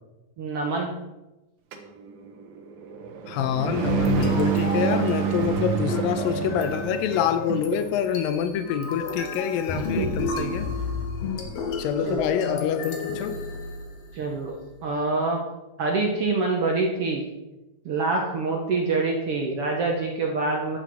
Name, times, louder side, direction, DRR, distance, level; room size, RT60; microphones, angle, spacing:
voice 1, 0.4-0.9 7.5-7.6 9.7-10.1 12.0-12.2 14.1-15.4 15.8-17.2 17.8-20.8, right 3 dB, 65° right, 1 dB, 1.4 m, -26 dB
sound 1, 1.7-7.3, right 8 dB, 85° right, 3.0 m, -28 dB
voice 2, 3.3-10.7 11.8-13.4, left 8 dB, 85° left, 10 dB, 2.4 m, -26 dB
sound 2, 3.9-14.2, left 3 dB, 55° left, 2.1 m, -32 dB
11.5 x 8.2 x 4.6 m, 1.0 s
omnidirectional pair, 4.1 m